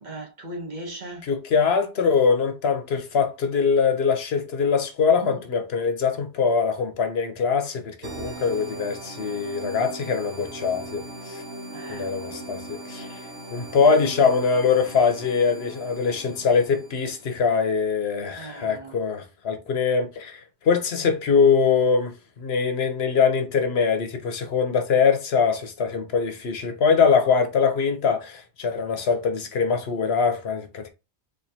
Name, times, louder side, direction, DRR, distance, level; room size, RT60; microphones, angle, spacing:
voice 1, 0.0-1.2 5.2-5.4 11.7-12.1 12.3-12.4 18.4-19.0, right 2 dB, 45° right, 0.9 m, -37 dB
voice 2, 1.2-11.4 11.9-13.2 13.5-30.9, left 5 dB, 65° left, 1.0 m, -23 dB
sound 1, 8.0-17.4, right 1 dB, 85° right, 1.1 m, -39 dB
4.3 x 2.6 x 2.7 m
omnidirectional pair, 1.2 m